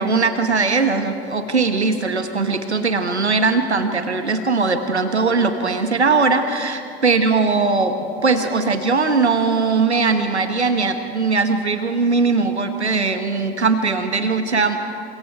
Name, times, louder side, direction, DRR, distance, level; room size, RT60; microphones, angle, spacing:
voice 1, 0.0-7.9 8.2-14.8, right 4 dB, 90° right, 8 dB, 1.2 m, -20 dB
29.5 x 25.5 x 4.5 m, 2.6 s
figure-of-eight pair, 65°, 33 cm